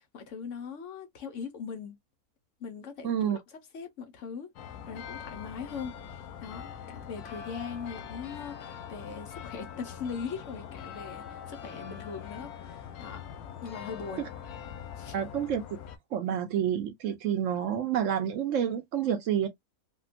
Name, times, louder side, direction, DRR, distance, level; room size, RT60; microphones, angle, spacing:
voice 1, 0.0-2.0 2.6-13.2 13.6-14.3 15.0-15.2, left 6 dB, 60° left, 1.0 m, -41 dB
voice 2, 3.0-3.4 15.1-15.6 16.1-19.5, right 9 dB, 70° right, 0.8 m, -28 dB
sound 1, 4.6-16.0, left 8 dB, 90° left, 1.2 m, -43 dB
3.6 x 2.3 x 2.4 m
omnidirectional pair, 1.6 m